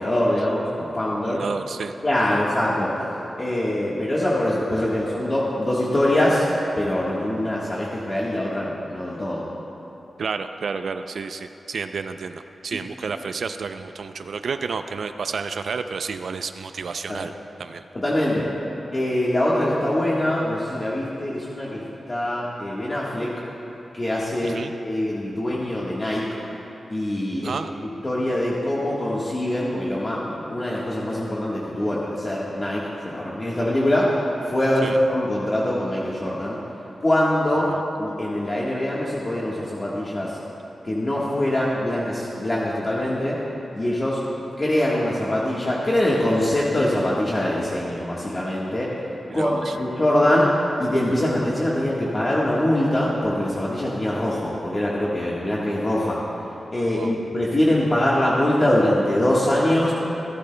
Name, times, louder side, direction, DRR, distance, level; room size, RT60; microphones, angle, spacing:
voice 1, 0.0-1.4 2.0-2.9 3.4-6.4 6.8-9.4 17.1-17.2 17.9-18.5 18.9-21.8 22.1-23.3 23.9-26.2 26.9-27.5 28.0-34.1 34.5-36.6 37.0-37.7 38.0-40.3 40.8-43.4 43.7-44.2 44.6-48.9 49.3-50.5 50.8-56.2 56.7-59.9, left 1 dB, 25° left, -6 dB, 1.4 m, -23 dB
voice 2, 1.2-1.9 2.3-2.4 10.2-17.3 17.6-17.8 24.4-24.7 27.4-27.7 34.8-35.0 37.5-37.8 49.3-49.8 56.9-57.1, right 5 dB, 70° right, 8 dB, 0.4 m, -31 dB
26.0 x 12.5 x 2.2 m, 3.0 s
wide cardioid pair, 150°, 0 cm